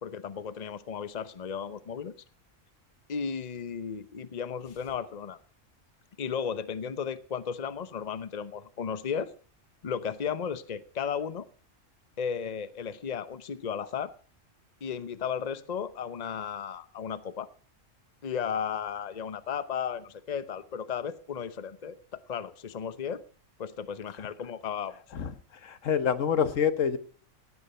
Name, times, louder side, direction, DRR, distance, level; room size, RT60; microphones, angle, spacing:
voice 1, 0.0-2.1 3.1-5.4 6.2-9.3 9.8-11.4 12.2-14.1 14.8-17.5 18.2-23.2 23.6-25.0, left 7 dB, 40° left, 0.9 m, -34 dB
voice 2, 25.6-27.0, left 7 dB, 85° left, 1.5 m, -26 dB
17.5 x 9.8 x 5.5 m
omnidirectional pair, 1.3 m